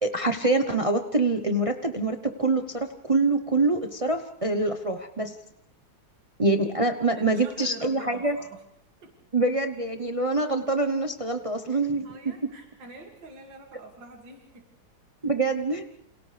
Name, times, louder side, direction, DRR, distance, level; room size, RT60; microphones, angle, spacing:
voice 1, 0.0-5.3 6.4-8.4 9.3-12.1 15.2-15.9, right 2 dB, 40° right, 6 dB, 0.5 m, -25 dB
voice 2, 7.2-8.6 9.0-9.1 11.7-14.7, right 3 dB, 65° right, 1 dB, 3.0 m, -46 dB
30.0 x 28.0 x 3.4 m, 0.79 s
omnidirectional pair, 2.2 m